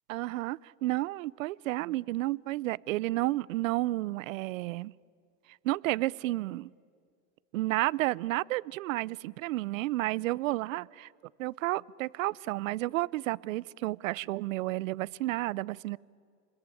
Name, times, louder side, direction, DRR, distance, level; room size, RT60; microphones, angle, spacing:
voice 1, 0.1-4.9 5.6-6.7 7.5-11.1 11.4-16.0, right 18 dB, 80° right, 0.7 m, -31 dB
28.5 x 21.5 x 9.8 m
supercardioid pair, 145°, 39 cm